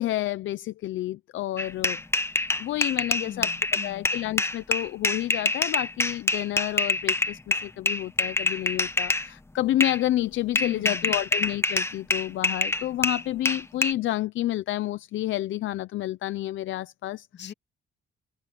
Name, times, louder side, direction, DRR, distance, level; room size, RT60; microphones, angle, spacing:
voice 1, 0.0-2.0 2.6-3.5 3.8-17.3, left 14 dB, 75° left, 0.7 m, -29 dB
sound 1, 1.6-9.3 9.8-10.0 10.5-13.9, left 2 dB, 15° left, 1.2 m, -26 dB
voice 2, 3.2-4.2 10.5-11.2 17.3-17.5, left 8 dB, 60° left, 2.7 m, -40 dB
cardioid pair, 90°, 20 cm